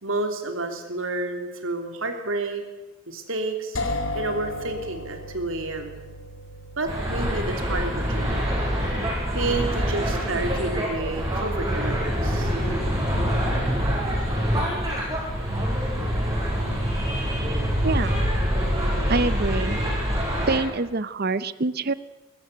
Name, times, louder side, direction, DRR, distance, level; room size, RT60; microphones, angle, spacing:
voice 1, 0.0-2.6 3.1-3.8 4.1-6.0 6.8-8.5 9.3-12.5, right 2 dB, 65° right, 5 dB, 3.1 m, -30 dB
sound 1, 3.7-13.5, left 2 dB, 65° left, 2.5 m, -37 dB
sound 2, 6.9-20.6, equal, 15° right, 6.1 m, -25 dB
voice 2, 17.8-18.2 19.1-19.8 20.5-21.9, right 3 dB, 45° right, 16 dB, 0.7 m, -25 dB
22.5 x 13.5 x 9.6 m, 1.2 s
head